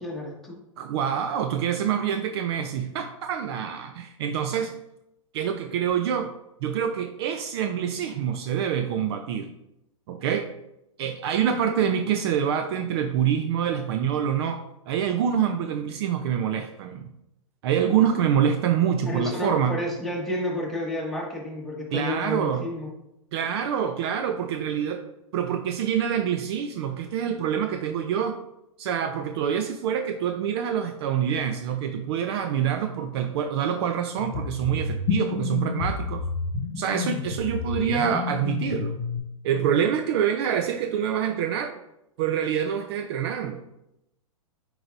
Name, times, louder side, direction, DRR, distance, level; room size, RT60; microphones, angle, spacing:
voice 1, 0.0-0.6 19.0-22.9, left 1 dB, ahead, -4 dB, 1.6 m, -31 dB
voice 2, 0.8-4.7 5.3-6.3 6.6-9.5 10.1-10.5 11.0-17.1 17.6-19.8 21.9-22.6 23.3-25.0 25.3-28.4 28.8-36.2 36.8-39.0 39.4-41.7 42.2-43.6, right 8 dB, 50° right, 7 dB, 0.5 m, -26 dB
sound 1, 34.2-39.2, left 5 dB, 45° left, 1.2 m, -30 dB
7.8 x 4.8 x 2.6 m, 0.84 s
hypercardioid pair, 115°, 17 cm